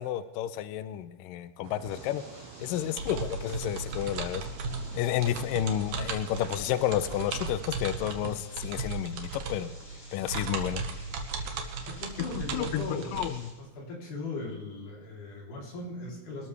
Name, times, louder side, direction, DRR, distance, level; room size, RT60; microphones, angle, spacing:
voice 1, 0.0-2.2 2.6-4.4 4.9-9.7 10.1-10.8 12.2-13.5, left 11 dB, 85° left, 13 dB, 1.9 m, -31 dB
sound 1, 1.6-7.6, right 8 dB, 85° right, 2.7 m, -47 dB
sound 2, 1.9-13.5, left 1 dB, 30° left, 5.8 m, -53 dB
sound 3, 3.0-13.3, right 4 dB, 60° right, 2.6 m, -37 dB
voice 2, 11.9-13.3 13.6-16.5, left 2 dB, 55° left, -2 dB, 4.7 m, -39 dB
24.5 x 13.0 x 3.3 m, 1.2 s
omnidirectional pair, 4.6 m